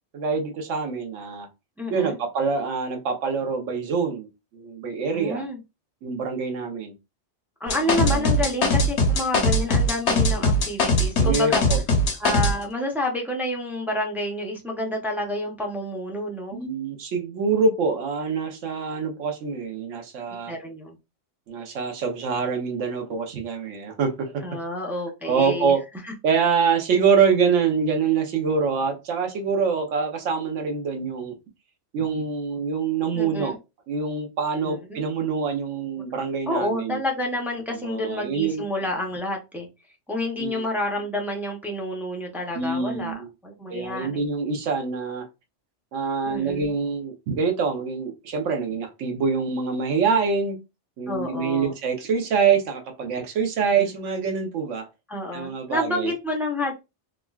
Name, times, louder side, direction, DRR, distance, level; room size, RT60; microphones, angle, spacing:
voice 1, 0.1-1.5 1.9-4.3 4.5-5.4 6.0-6.9 7.9-8.3 11.2-11.8 16.5-20.5 21.5-24.6 25.2-25.8 26.2-31.3 31.9-33.6 33.9-37.0 37.8-38.6 40.4-40.6 42.5-43.3 43.7-45.3 45.9-50.6 51.0-54.8 55.3-56.1, right 5 dB, 85° right, 1.1 m, -25 dB
voice 2, 1.8-2.2 5.1-5.6 7.6-11.6 12.2-16.6 20.5-21.0 24.4-25.7 26.0-26.1 33.1-33.6 34.6-35.0 36.5-39.7 40.1-43.1 43.4-44.2 46.3-46.7 51.1-51.7 53.8-53.9 55.1-56.7, left 1 dB, 5° right, 0.4 m, -29 dB
sound 1, 7.7-12.5, left 1 dB, 70° left, 1.1 m, -20 dB
3.6 x 2.2 x 2.3 m
omnidirectional pair, 1.2 m